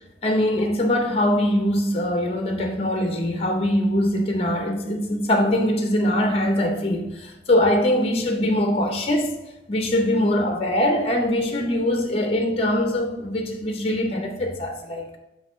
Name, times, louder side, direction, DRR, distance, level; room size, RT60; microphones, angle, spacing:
voice 1, 0.2-9.4 9.7-15.2, left 1 dB, 35° left, 0.6 m, -22 dB
6.4 x 3.1 x 5.1 m
head